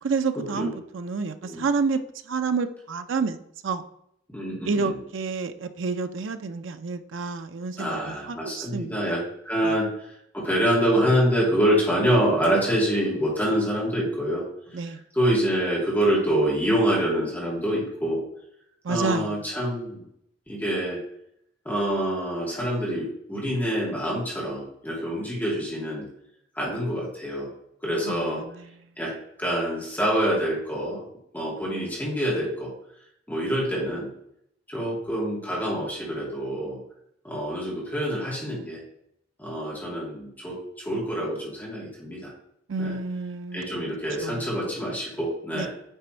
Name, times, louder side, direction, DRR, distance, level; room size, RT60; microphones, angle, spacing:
voice 1, 0.0-2.0 2.3-3.4 3.6-3.8 4.7-9.0 9.6-9.7 14.7-15.0 18.8-19.4 28.0-28.7 42.7-43.6 44.2-44.5 45.5-45.7, right 4 dB, 90° right, 9 dB, 0.5 m, -29 dB
voice 2, 4.3-5.0 7.8-18.2 18.9-20.1 20.5-21.0 21.6-26.1 26.5-27.5 27.8-28.4 29.0-31.0 31.3-32.7 33.3-34.1 34.7-36.8 37.2-38.8 39.4-42.3 42.8-43.0 43.5-45.7, equal, 10° left, -5 dB, 2.4 m, -26 dB
9.0 x 4.1 x 4.4 m, 0.74 s
head